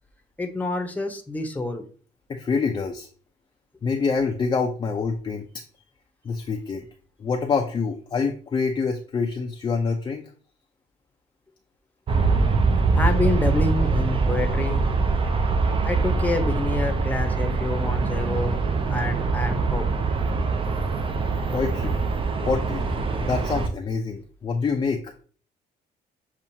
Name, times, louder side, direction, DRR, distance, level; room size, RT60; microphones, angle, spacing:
voice 1, 0.4-1.8 12.9-14.8 15.8-18.6 18.9-19.8, left 2 dB, 10° left, 5 dB, 0.8 m, -27 dB
voice 2, 2.3-3.1 3.8-5.5 6.2-6.9 7.2-10.3 21.5-22.0 22.4-22.9 23.3-25.1, left 5 dB, 25° left, 3 dB, 0.5 m, -26 dB
Aircraft, 12.1-23.7, right 4 dB, 30° right, 0.6 m, -23 dB
7.0 x 2.4 x 2.7 m, 0.42 s
cardioid pair, 110°, 17 cm